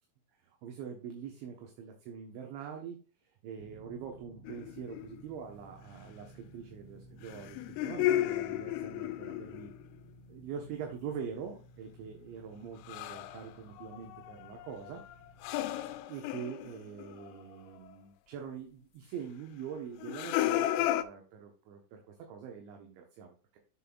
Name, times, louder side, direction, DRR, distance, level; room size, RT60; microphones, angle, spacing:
voice 1, 0.4-3.0 3.4-9.7 10.3-15.0 16.1-23.6, right 7 dB, 75° right, 2 dB, 3.3 m, -44 dB
sound 1, 3.6-16.0, equal, 30° right, 4.3 m, -56 dB
sound 2, 4.5-5.2 7.3-9.9 12.9-13.5 13.8-17.4 17.9-18.0 20.0-21.1, left 14 dB, 90° left, 3.2 m, -33 dB
7.8 x 7.5 x 2.4 m, 0.38 s
omnidirectional pair, 5.7 m